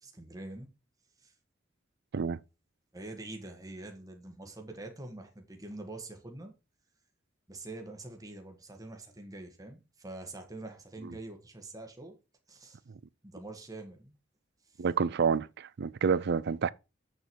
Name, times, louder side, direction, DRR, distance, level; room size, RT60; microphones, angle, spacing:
voice 1, 0.0-0.7 1.2-1.3 2.9-6.5 7.5-12.2 12.5-12.8 13.2-14.2 14.7-14.8, right 2 dB, 20° right, 1.5 m, -45 dB
voice 2, 14.8-16.7, right 5 dB, 55° right, 0.4 m, -28 dB
8.0 x 6.9 x 4.6 m
head